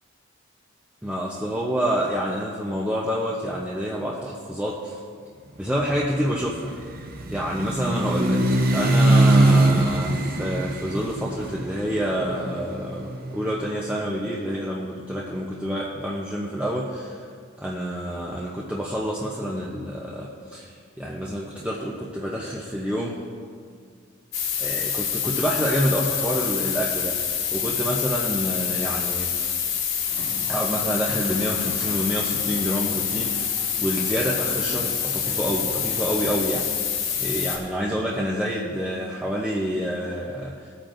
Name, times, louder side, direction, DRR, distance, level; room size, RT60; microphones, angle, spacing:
voice 1, 1.0-5.0 5.6-6.7 7.3-8.4 8.7-17.3 17.6-23.2 24.6-29.6 30.5-33.5 33.8-36.7 37.2-40.7, equal, 5° right, -4 dB, 0.7 m, -28 dB
sound 1, 5.8-13.8, right 1 dB, 45° right, 0.8 m, -22 dB
sound 2, 24.3-37.6, left 8 dB, 85° left, 1.8 m, -27 dB
sound 3, 30.0-36.7, equal, 70° right, 1.4 m, -41 dB
17.5 x 8.8 x 2.6 m, 2.1 s
head